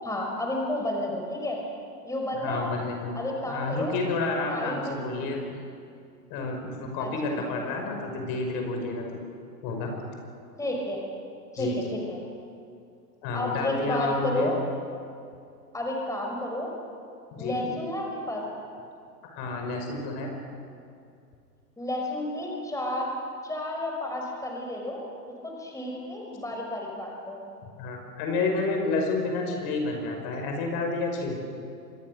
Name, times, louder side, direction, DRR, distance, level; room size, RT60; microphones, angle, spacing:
voice 1, 0.0-1.6 2.0-2.7 3.1-3.9 4.5-5.0 7.0-7.1 10.6-11.0 11.5-11.7 12.1-12.2 13.3-14.6 15.7-16.7 17.4-18.4 21.8-23.1 23.4-25.0 25.4-27.4, left 1 dB, 5° left, 0 dB, 5.1 m, -31 dB
voice 2, 2.4-3.1 3.5-5.6 6.3-9.2 9.6-9.9 11.6-11.8 13.2-14.5 17.3-17.7 19.3-20.3 27.8-31.4, left 3 dB, 45° left, 3 dB, 5.5 m, -30 dB
26.0 x 21.5 x 6.6 m, 2.4 s
hypercardioid pair, 100°, 48 cm